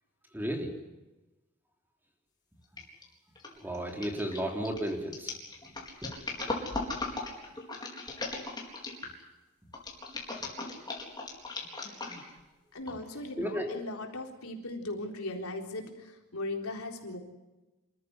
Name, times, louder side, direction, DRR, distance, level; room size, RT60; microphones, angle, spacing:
voice 1, 0.3-0.7 3.6-5.3 13.4-13.7, right 1 dB, 10° right, 2 dB, 3.4 m, -33 dB
sound 1, 2.8-3.0 3.4-9.2 9.7-12.4 12.9-13.0, left 3 dB, 20° left, 4.4 m, -37 dB
voice 2, 12.7-17.2, left 2 dB, 90° left, 2 dB, 3.9 m, -38 dB
27.0 x 14.0 x 9.7 m, 1.1 s
head